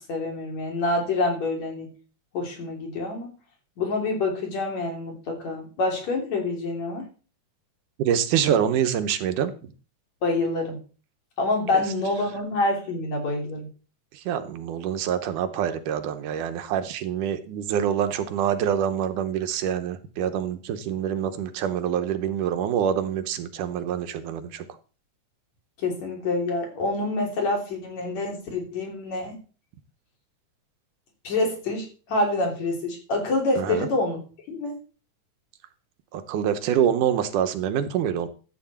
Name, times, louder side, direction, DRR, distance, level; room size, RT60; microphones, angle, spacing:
voice 1, 0.1-1.9 2.3-3.3 3.8-7.1 10.2-10.8 11.4-13.7 25.8-29.4 31.2-34.2 34.5-34.7, left 2 dB, 60° left, 1 dB, 4.4 m, -27 dB
voice 2, 8.0-9.7 11.7-11.8 14.1-24.7 33.6-33.9 36.1-38.3, right 9 dB, 85° right, 10 dB, 2.5 m, -26 dB
13.0 x 8.3 x 4.3 m, 0.37 s
omnidirectional pair, 3.6 m